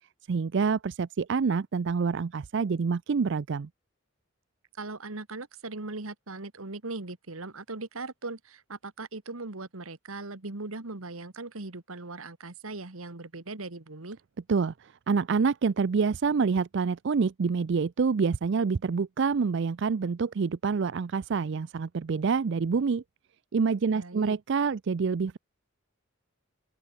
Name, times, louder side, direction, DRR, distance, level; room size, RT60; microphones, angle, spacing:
voice 1, 0.3-3.7 14.5-23.0 23.5-25.4, right 5 dB, 60° right, 0.4 m, -27 dB
voice 2, 4.8-14.2 23.9-24.4, right 3 dB, 85° right, 1.8 m, -39 dB
open air
head